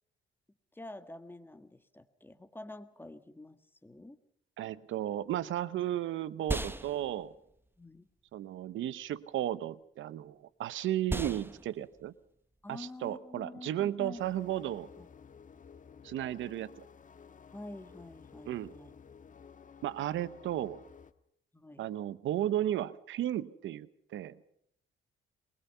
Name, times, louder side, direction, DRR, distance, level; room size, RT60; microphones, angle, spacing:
voice 1, 0.7-4.2 7.8-8.1 12.6-15.1 17.5-18.9 21.5-21.9, left 2 dB, 10° left, 11 dB, 1.6 m, -48 dB
voice 2, 4.6-7.3 8.3-12.1 12.7-14.9 16.0-16.8 18.4-18.7 19.8-20.8 21.8-24.4, right 12 dB, 75° right, 17 dB, 0.9 m, -34 dB
sound 1, 5.3-14.7, right 1 dB, 10° right, 1.0 m, -42 dB
sound 2, 14.1-21.1, left 6 dB, 40° left, 1.3 m, -54 dB
22.5 x 20.5 x 5.7 m, 0.70 s
cardioid pair, 90°, 20 cm